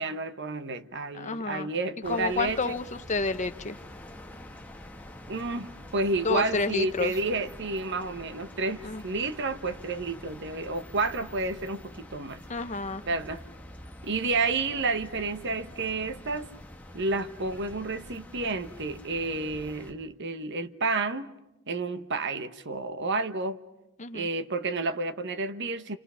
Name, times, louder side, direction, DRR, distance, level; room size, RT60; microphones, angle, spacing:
voice 1, 0.0-2.7 5.3-12.4 13.1-13.4 14.0-16.5 16.9-21.3 21.7-23.6 24.1-26.0, right 3 dB, 60° right, 1.2 m, -30 dB
voice 2, 1.1-1.7 2.0-3.8 6.2-7.1 8.8-9.0 12.5-13.0 24.0-24.3, left 4 dB, 35° left, 1.0 m, -30 dB
sound 1, 2.0-19.9, left 1 dB, 5° left, 1.6 m, -46 dB
28.5 x 28.0 x 5.7 m
head